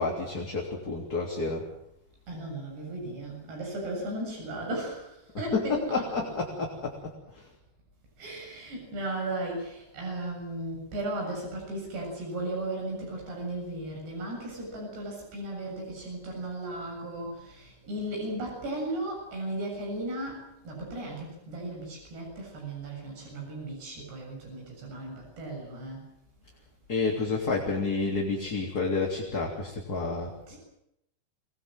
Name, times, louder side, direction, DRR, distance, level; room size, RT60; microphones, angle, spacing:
voice 1, 0.0-1.7 5.3-7.5 26.9-30.3, left 3 dB, 25° left, -1 dB, 3.3 m, -30 dB
voice 2, 2.3-6.0 8.2-26.1 30.5-30.6, right 1 dB, 80° right, -1 dB, 9.6 m, -36 dB
26.5 x 20.5 x 7.7 m, 0.80 s
omnidirectional pair, 4.7 m